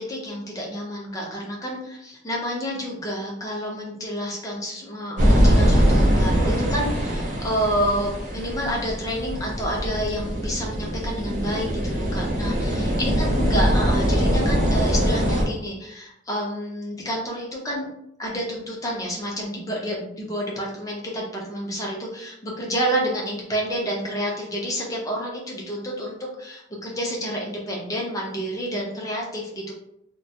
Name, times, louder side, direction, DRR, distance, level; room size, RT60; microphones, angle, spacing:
voice 1, 0.0-17.9 18.2-29.7, equal, 15° left, -2 dB, 0.5 m, -29 dB
sound 1, 5.2-15.4, equal, 40° right, 0.6 m, -22 dB
2.3 x 2.2 x 2.7 m, 0.77 s
head